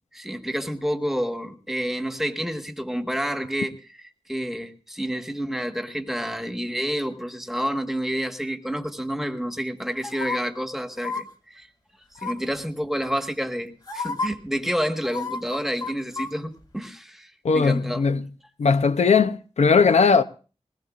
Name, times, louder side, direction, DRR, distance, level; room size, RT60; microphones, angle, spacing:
voice 1, 0.1-4.0 4.3-11.7 12.2-18.0, equal, 5° right, 1.4 m, -29 dB
sound 1, 10.0-10.4 11.0-11.2 12.1-12.5 13.4-13.5 13.9-14.3 15.0-16.3 16.6-16.7, left 4 dB, 40° left, 2.1 m, -31 dB
voice 2, 17.4-18.3 18.6-20.2, left 5 dB, 85° left, 0.7 m, -19 dB
21.0 x 19.0 x 2.5 m
wide cardioid pair, 85°, 11 cm